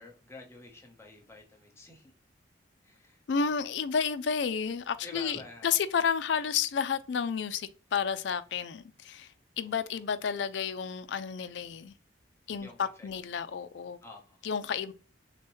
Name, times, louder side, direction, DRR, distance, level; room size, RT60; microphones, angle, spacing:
voice 1, 0.0-2.1 2.8-3.2 5.0-5.8 9.6-10.1 12.6-13.1 14.0-14.5, left 2 dB, 15° left, 1.0 m, -49 dB
voice 2, 3.3-12.0 12.5-14.0 14.4-14.9, left 6 dB, 75° left, 0.4 m, -31 dB
6.4 x 2.2 x 3.1 m
head